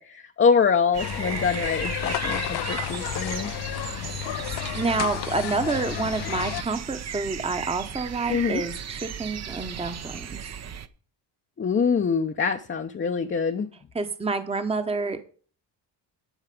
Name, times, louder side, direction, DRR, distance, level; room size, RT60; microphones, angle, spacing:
voice 1, 0.0-3.5 8.3-8.6 11.6-13.7, left 6 dB, 25° left, 5 dB, 0.7 m, -24 dB
sound 1, 0.9-10.9, right 8 dB, 35° right, 0.7 m, -36 dB
sound 2, 1.0-6.6, left 14 dB, 60° left, 0.6 m, -31 dB
voice 2, 4.4-10.4 13.9-15.2, right 3 dB, 15° right, 9 dB, 1.0 m, -28 dB
11.0 x 4.8 x 8.4 m, 0.42 s
cardioid pair, 120°, 44 cm